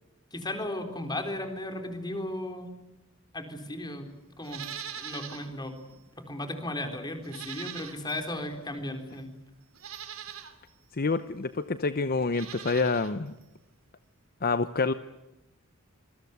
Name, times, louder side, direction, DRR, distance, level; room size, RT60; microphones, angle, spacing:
voice 1, 0.3-2.8 3.3-4.1 4.4-4.6 4.9-5.7 6.2-9.3, left 1 dB, 20° left, 6 dB, 4.0 m, -35 dB
Livestock farm animals working animals, 4.4-5.5 5.9-6.0 7.2-8.3 9.1-9.2 9.7-10.5 12.2-13.1 13.4-13.5, right 9 dB, 85° right, 2.9 m, -41 dB
voice 2, 11.0-13.3 14.4-14.9, left 4 dB, 45° left, 11 dB, 0.8 m, -27 dB
27.0 x 20.5 x 8.2 m, 0.97 s
head